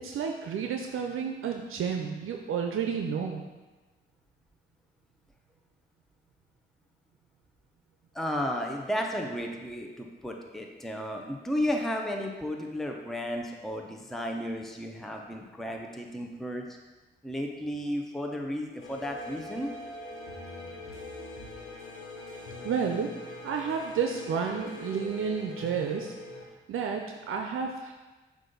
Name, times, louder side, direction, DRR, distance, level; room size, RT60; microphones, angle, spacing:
voice 1, 0.0-3.4 22.6-23.1 23.4-26.1 26.7-27.9, right 6 dB, 80° right, 3 dB, 0.5 m, -31 dB
voice 2, 8.1-16.7 17.2-19.7, equal, ahead, 1 dB, 0.8 m, -33 dB
sound 1, 18.8-26.5, left 2 dB, 75° left, 1.0 m, -43 dB
7.4 x 2.6 x 5.2 m, 1.2 s
cardioid pair, 50°, 21 cm